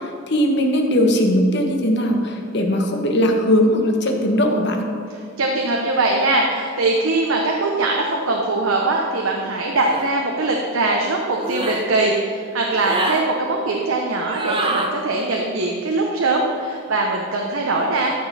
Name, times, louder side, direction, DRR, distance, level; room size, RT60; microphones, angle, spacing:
voice 1, 0.0-4.9, equal, 55° left, 3 dB, 1.2 m, -19 dB
voice 2, 5.4-18.1, right 2 dB, 90° right, 0 dB, 1.0 m, -21 dB
sound 1, 9.8-10.1 11.4-11.8 12.7-13.2 14.3-14.9, right 2 dB, 25° right, 0.8 m, -25 dB
13.5 x 6.1 x 4.3 m, 2.4 s
head